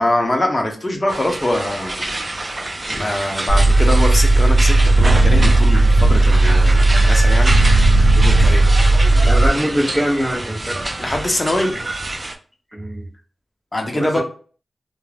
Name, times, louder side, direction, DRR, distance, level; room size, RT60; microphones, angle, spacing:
voice 1, 0.0-2.2 2.9-7.6 8.1-8.7 11.0-11.8 13.7-14.2, left 1 dB, 25° left, 3 dB, 0.7 m, -23 dB
sound 1, 1.1-12.4, right 2 dB, 35° right, 0.4 m, -27 dB
sound 2, 3.5-9.5, right 2 dB, 60° right, 0.7 m, -13 dB
voice 2, 9.2-10.8 12.7-13.1 13.9-14.2, equal, 10° right, -6 dB, 0.7 m, -22 dB
2.4 x 2.0 x 3.2 m, 0.40 s
cardioid pair, 65°, 0 cm